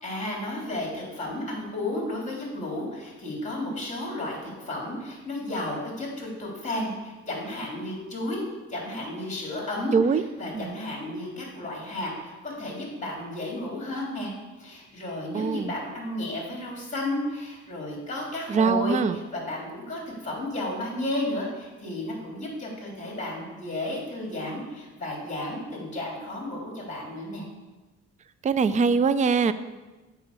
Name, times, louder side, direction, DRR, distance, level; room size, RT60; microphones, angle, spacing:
voice 1, 0.0-8.4 8.7-14.3 14.6-27.4, left 1 dB, 25° left, -2 dB, 3.2 m, -33 dB
voice 2, 9.9-10.2 10.5-10.7 15.3-15.7 18.5-19.2 28.4-29.5, right 5 dB, 25° right, 13 dB, 0.4 m, -22 dB
8.0 x 4.8 x 6.7 m, 1.2 s
cardioid pair, 90°, 30 cm